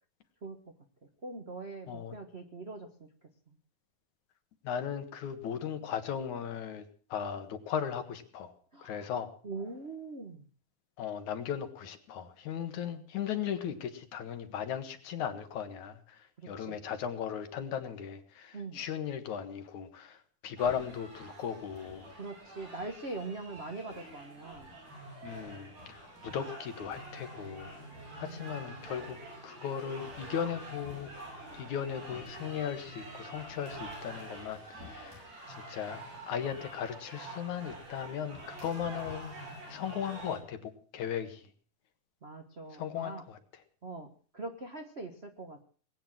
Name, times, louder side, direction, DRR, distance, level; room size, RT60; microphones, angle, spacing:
voice 1, 1.0-3.1 3.5-3.6 8.7-9.1 9.4-10.5 16.4-16.8 18.5-18.8 22.2-24.7 28.2-28.6 42.2-43.2 43.8-45.6, right 3 dB, 70° right, 5 dB, 0.6 m, -42 dB
voice 2, 4.6-8.5 8.8-9.3 11.0-22.1 25.2-27.7 28.2-29.2 29.4-31.1 31.5-41.5 42.7-43.4, left 8 dB, 70° left, 8 dB, 2.9 m, -37 dB
sound 1, 20.6-40.4, right 1 dB, 85° right, 8.9 m, -47 dB
20.5 x 9.0 x 7.6 m, 0.43 s
omnidirectional pair, 3.5 m